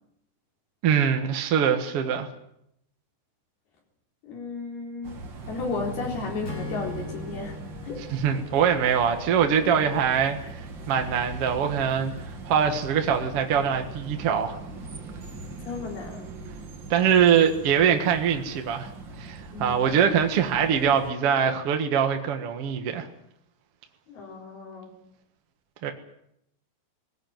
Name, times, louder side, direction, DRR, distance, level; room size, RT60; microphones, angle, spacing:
voice 1, 0.8-2.3 8.1-12.1 12.4-14.6 16.9-18.9 19.2-23.1 25.8-25.9, right 7 dB, 60° right, 6 dB, 1.6 m, -23 dB
voice 2, 4.2-5.2 5.5-8.1 15.6-16.3 19.5-20.0 24.1-24.9, left 4 dB, 60° left, 1 dB, 5.5 m, -34 dB
sound 1, 5.0-21.1, right 3 dB, 40° right, 1.9 m, -40 dB
Acoustic guitar / Strum, 6.4-9.9, left 4 dB, 35° left, 1.8 m, -41 dB
20.5 x 18.5 x 9.3 m, 0.77 s
omnidirectional pair, 5.0 m